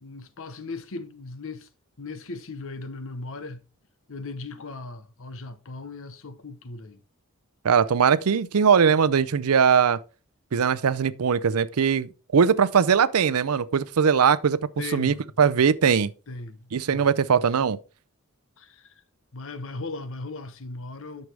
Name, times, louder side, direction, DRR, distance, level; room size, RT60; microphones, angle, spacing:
voice 1, 0.0-1.7 2.0-3.6 4.1-7.0 14.8-15.2 16.3-17.7 18.6-18.9 19.3-21.3, left 3 dB, 65° left, 1.0 m, -38 dB
voice 2, 7.6-10.0 10.5-14.6 14.9-16.1 16.7-17.8, right 6 dB, 80° right, 0.5 m, -20 dB
9.4 x 6.5 x 3.3 m
head